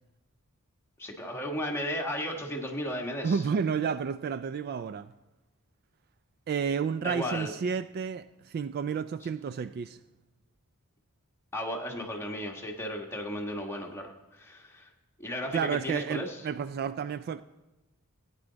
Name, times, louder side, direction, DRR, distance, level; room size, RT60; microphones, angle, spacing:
voice 1, 1.0-3.4 7.0-7.5 11.5-14.9 15.2-16.4, left 1 dB, 10° left, 1.4 m, -35 dB
voice 2, 3.2-5.1 6.5-10.0 15.5-17.4, right 6 dB, 45° right, 0.3 m, -31 dB
16.0 x 9.3 x 4.0 m
head